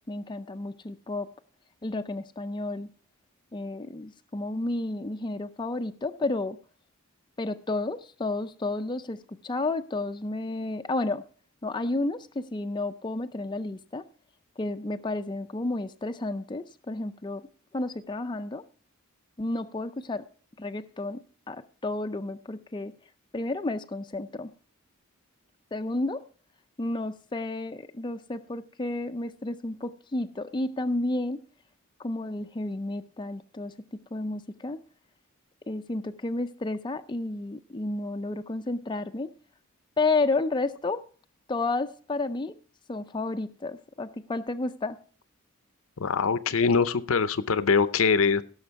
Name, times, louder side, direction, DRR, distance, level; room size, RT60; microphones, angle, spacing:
voice 1, 0.1-1.3 1.8-2.9 3.5-6.6 7.4-9.2 9.4-11.2 11.6-14.0 14.6-17.4 17.7-18.6 19.4-20.2 20.6-21.2 21.5-22.9 23.3-24.5 25.7-26.2 26.8-31.4 32.0-33.7 34.1-34.8 35.7-39.3 40.0-41.0 41.5-42.5 42.9-45.0, left 2 dB, 20° left, 0.5 m, -31 dB
voice 2, 46.0-48.4, left 5 dB, 65° left, 0.7 m, -23 dB
16.5 x 6.4 x 4.6 m
head